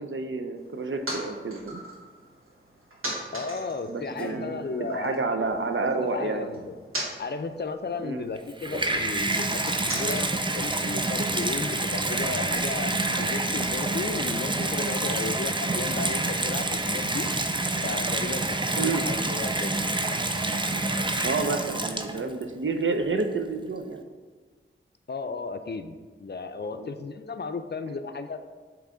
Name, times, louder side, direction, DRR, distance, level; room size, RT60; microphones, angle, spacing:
voice 1, 0.0-1.8 3.9-6.5 8.0-8.3 18.8-19.0 21.2-24.0 26.8-26.9, right 4 dB, 70° right, 6 dB, 0.6 m, -29 dB
sound 1, 0.6-5.2 5.5-11.6, right 1 dB, 85° right, 1.3 m, -41 dB
voice 2, 3.3-5.4 5.8-6.8 7.2-10.3 10.5-17.3 17.8-18.5 18.8-19.8 25.1-28.4, left 4 dB, 55° left, 9 dB, 0.5 m, -34 dB
Guitar, 4.1-7.3, right 1 dB, 5° left, 0.9 m, -46 dB
Water tap faucet / Bathtub (filling or washing), 8.4-22.4 23.2-23.3, right 2 dB, 20° right, 0.5 m, -27 dB
8.2 x 3.1 x 3.8 m, 1.5 s
wide cardioid pair, 45°, 21 cm